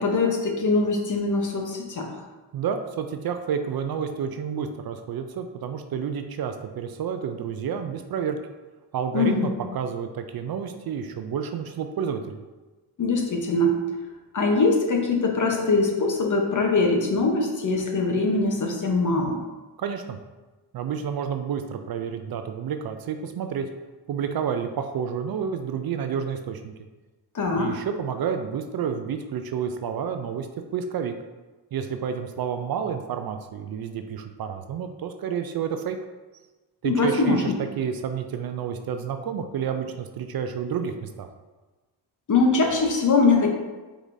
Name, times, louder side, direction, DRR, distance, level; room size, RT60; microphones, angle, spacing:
voice 1, 0.0-2.1 9.1-9.5 13.0-13.7 14.3-19.4 27.3-27.7 36.8-37.4 42.3-43.5, left 3 dB, 40° left, 2 dB, 0.9 m, -22 dB
voice 2, 2.5-8.4 8.9-12.4 19.8-20.2 20.7-23.7 24.1-26.7 27.6-30.5 30.7-31.1 31.7-36.0 36.8-41.3, right 7 dB, 55° right, 7 dB, 0.5 m, -30 dB
4.9 x 3.8 x 2.7 m, 1.2 s
cardioid pair, 65°, 45 cm